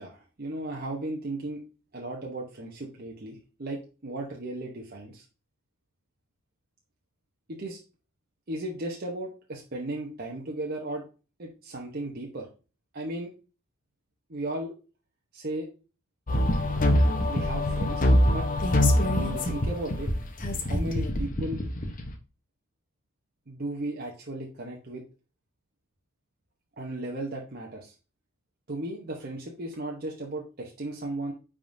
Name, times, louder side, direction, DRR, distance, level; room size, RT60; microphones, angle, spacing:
voice 1, 0.0-1.6 1.9-5.2 7.5-7.8 8.5-11.1 11.4-12.5 12.9-13.3 14.3-14.7 15.3-15.7 17.3-18.5 19.1-20.1 20.6-21.6 23.5-25.0 26.8-27.9 28.7-31.3, right 1 dB, 45° right, -1 dB, 0.9 m, -35 dB
sound 1, 16.3-22.1, left 1 dB, 40° left, 0.9 m, -24 dB
9.9 x 3.7 x 2.6 m, 0.34 s
head